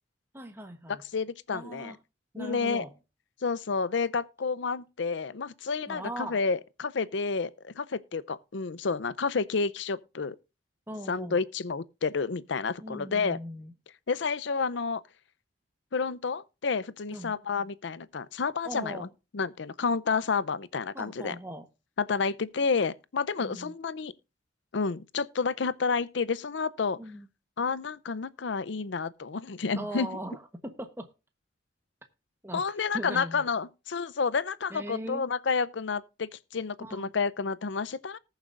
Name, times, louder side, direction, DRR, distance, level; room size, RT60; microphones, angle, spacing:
voice 1, 0.3-1.0 1.5-2.0 2.3-2.9 5.9-6.4 10.9-11.4 12.8-13.7 17.1-17.3 18.6-19.1 20.9-21.7 23.4-23.7 27.0-27.3 29.7-31.1 32.4-32.6 32.9-33.5 34.7-35.3 36.8-37.1, right 1 dB, 10° right, 1.1 m, -39 dB
voice 2, 0.9-2.0 2.4-2.8 3.4-10.4 11.1-13.4 14.1-15.0 15.9-19.1 19.3-21.4 22.0-24.1 24.7-27.0 27.6-30.1 32.5-38.2, left 5 dB, 75° left, 0.6 m, -30 dB
19.5 x 7.2 x 2.5 m
head